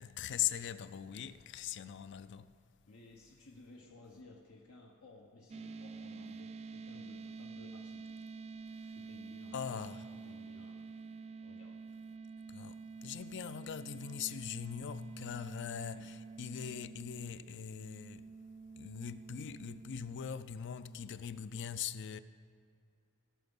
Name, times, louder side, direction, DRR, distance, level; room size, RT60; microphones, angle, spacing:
voice 1, 0.0-2.5 9.5-10.0 12.5-18.3 18.8-22.2, left 8 dB, 55° left, 0.4 m, -41 dB
voice 2, 2.8-8.3 8.9-10.9 11.4-11.9 15.9-16.1, left 2 dB, 80° left, 0.9 m, -57 dB
sound 1, 5.5-21.0, right 4 dB, 30° right, 0.3 m, -48 dB
17.0 x 5.9 x 5.4 m
head